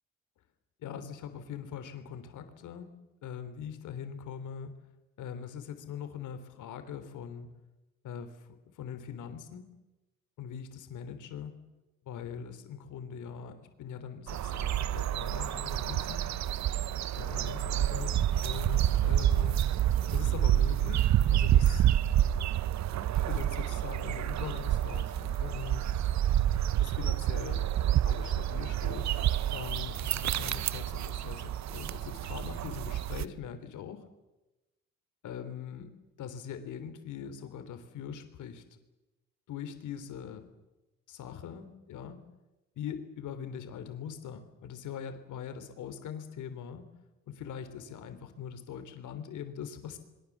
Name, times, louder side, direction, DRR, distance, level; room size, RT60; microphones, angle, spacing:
voice 1, 0.8-2.9 3.2-4.8 5.2-7.5 8.0-9.6 10.4-11.5 12.0-16.3 17.2-19.7 20.0-21.9 23.3-25.9 26.8-27.7 28.0-29.1 29.5-34.1 35.2-35.9 36.2-38.8 39.5-40.5 41.1-42.2 42.7-46.9 47.3-50.0, left 8 dB, 80° left, 9 dB, 3.3 m, -42 dB
sound 1, 14.3-33.3, right 11 dB, 65° right, 0.9 m, -28 dB
26.5 x 22.5 x 7.3 m, 1.0 s
cardioid pair, 90°, 30 cm